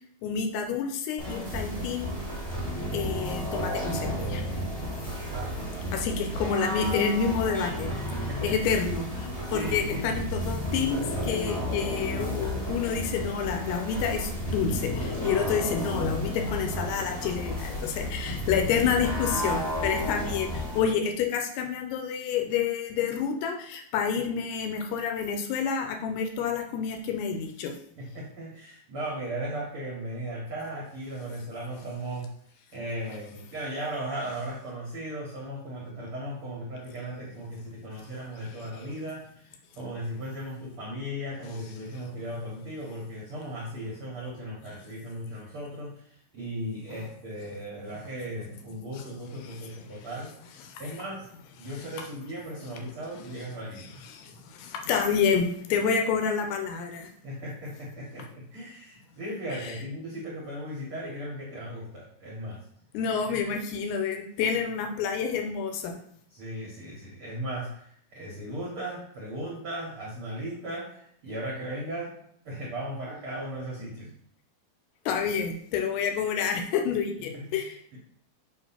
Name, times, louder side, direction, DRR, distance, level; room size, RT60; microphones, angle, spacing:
voice 1, 0.2-2.2 2.9-4.4 5.9-7.9 8.2-27.7 41.9-42.0 44.7-44.8 49.0-49.1 49.4-50.0 50.6-50.8 51.6-51.9 53.7-57.1 59.6-59.8 62.9-65.9 75.1-77.8, left 6 dB, 85° left, 4 dB, 2.7 m, -29 dB
sound 1, 1.2-20.8, equal, 45° left, 0.4 m, -32 dB
voice 2, 5.3-6.0 8.2-8.5 9.4-10.2 28.0-32.3 32.7-39.5 39.8-46.1 46.3-50.3 50.8-51.3 51.6-53.8 57.2-62.6 63.3-63.5 66.3-72.1 72.4-74.1 77.3-77.6, right 1 dB, 75° right, -4 dB, 1.2 m, -37 dB
7.5 x 2.6 x 5.6 m, 0.67 s
omnidirectional pair, 4.6 m